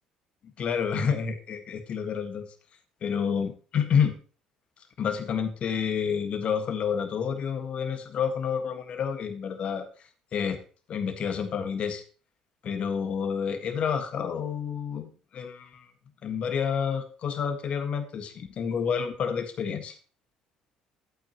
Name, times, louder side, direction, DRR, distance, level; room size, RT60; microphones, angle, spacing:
voice 1, 0.4-2.5 3.0-4.2 5.0-9.9 10.3-10.6 10.9-12.0 12.6-15.9 16.2-19.9, left 7 dB, 50° left, 7 dB, 1.6 m, -29 dB
11.5 x 8.7 x 3.0 m, 0.38 s
hypercardioid pair, 55°, 3 cm